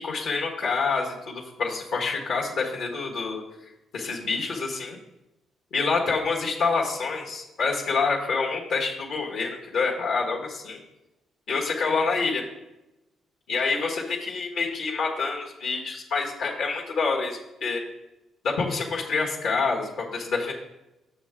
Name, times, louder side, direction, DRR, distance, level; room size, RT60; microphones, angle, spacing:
voice 1, 0.0-3.4 3.9-5.0 5.7-10.8 11.5-12.4 13.5-17.8 18.4-20.5, left 4 dB, 75° left, -1 dB, 1.5 m, -27 dB
7.3 x 6.7 x 3.6 m, 0.95 s
cardioid pair, 90°, 0 cm